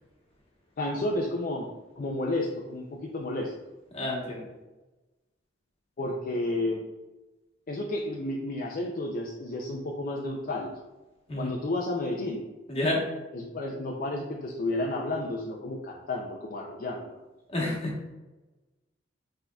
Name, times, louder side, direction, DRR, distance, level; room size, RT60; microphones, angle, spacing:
voice 1, 0.8-1.7 2.0-3.5 6.0-6.8 7.7-10.8 11.4-12.5 13.3-17.2, left 2 dB, 45° left, -1 dB, 0.5 m, -31 dB
voice 2, 3.9-4.4 11.3-11.5 12.7-13.0 17.5-17.9, left 1 dB, 30° left, -2 dB, 1.1 m, -29 dB
5.9 x 3.7 x 2.3 m, 1.1 s
head